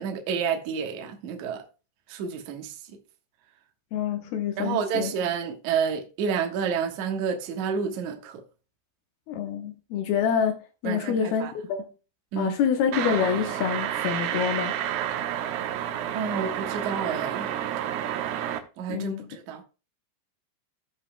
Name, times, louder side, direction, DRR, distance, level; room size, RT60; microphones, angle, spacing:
voice 1, 0.0-1.6 2.1-2.8 4.6-8.4 10.8-11.5 12.3-12.6 16.1-17.5 18.8-19.6, right 6 dB, 60° right, 2.1 m, -29 dB
voice 2, 3.9-5.1 9.3-11.9 12.4-14.7 18.9-19.3, left 7 dB, 75° left, 2.6 m, -27 dB
sound 1, 12.9-18.6, right 11 dB, 80° right, 2.9 m, -30 dB
16.0 x 5.5 x 2.2 m
omnidirectional pair, 4.8 m